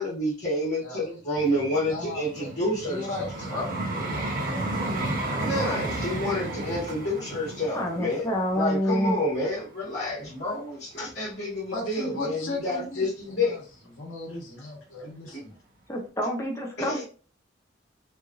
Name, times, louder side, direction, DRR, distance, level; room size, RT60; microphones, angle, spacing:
voice 1, 0.0-3.7 5.3-8.2 8.5-13.6 16.8-17.0, left 1 dB, 55° left, -10 dB, 1.3 m, -29 dB
Vehicle, 1.4-10.5 11.1-11.3, right 1 dB, 45° right, 0.7 m, -33 dB
voice 2, 1.9-2.5 2.9-3.6 4.1-4.5 11.7-13.6 13.9-15.6, left 2 dB, 85° left, -2 dB, 1.1 m, -36 dB
voice 3, 7.7-9.2 15.9-17.0, equal, 15° left, 1 dB, 0.6 m, -27 dB
3.0 x 2.5 x 2.4 m, 0.38 s
head